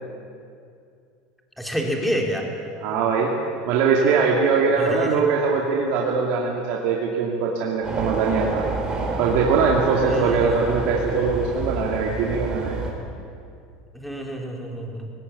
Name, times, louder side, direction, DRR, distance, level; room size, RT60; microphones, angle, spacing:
voice 1, 1.6-2.5 4.8-5.1 10.0-10.6 13.9-15.1, equal, ahead, 0 dB, 3.6 m, -28 dB
voice 2, 2.8-3.3 3.7-8.7 9.2-12.8, right 5 dB, 65° right, -1 dB, 2.6 m, -21 dB
sound 1, 7.8-12.9, right 3 dB, 25° right, 4.1 m, -29 dB
19.5 x 18.0 x 8.4 m, 2.4 s
supercardioid pair, 130°, 3 cm